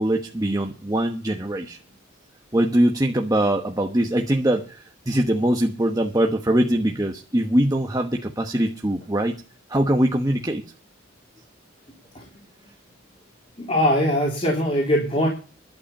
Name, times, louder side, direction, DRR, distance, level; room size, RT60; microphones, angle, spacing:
voice 1, 0.0-1.8 2.5-9.4 9.7-10.6, right 1 dB, 20° right, 1.1 m, -22 dB
voice 2, 13.6-15.3, equal, 30° left, 3.7 m, -21 dB
12.0 x 8.0 x 8.4 m
head